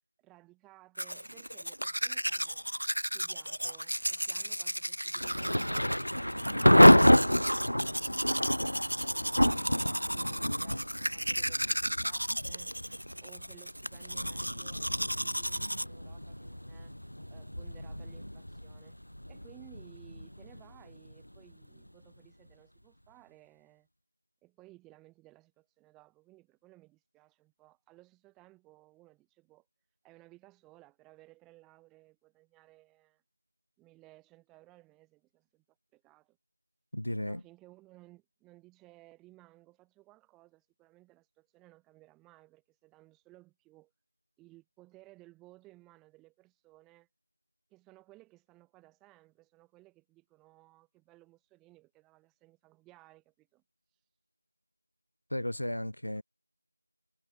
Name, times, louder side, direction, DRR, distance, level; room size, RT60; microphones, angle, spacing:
voice 1, 0.2-2.6 3.1-6.0 6.3-12.7 13.2-16.9 17.3-19.0 19.3-23.9 24.4-29.7 30.0-33.2 33.8-35.6 35.9-36.4 37.2-43.9 44.4-47.1 47.7-53.6 56.1-56.2, right 19 dB, ahead, 2.7 m, -59 dB
Domestic sounds home sounds, 1.0-15.8, equal, 70° right, 2.3 m, -34 dB
Thunder / Rain, 5.2-21.9, equal, 85° left, 1.5 m, -28 dB
voice 2, 36.9-37.4 55.3-56.2, left 1 dB, 35° left, 2.5 m, -34 dB
figure-of-eight pair, 180°, 0 cm